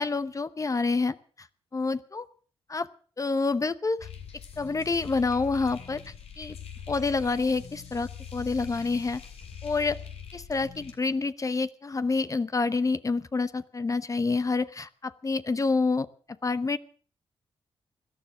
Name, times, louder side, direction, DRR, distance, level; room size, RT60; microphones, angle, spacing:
voice 1, 0.0-1.5 1.7-2.3 2.7-2.9 3.2-4.1 4.6-6.0 6.4-6.5 6.9-9.2 9.6-10.0 10.3-16.1 16.4-16.8, left 3 dB, 30° left, 14 dB, 0.9 m, -28 dB
sound 1, 4.0-10.9, left 7 dB, 80° left, 2.9 m, -43 dB
17.5 x 12.0 x 6.1 m, 0.43 s
cardioid pair, 80°, 10 cm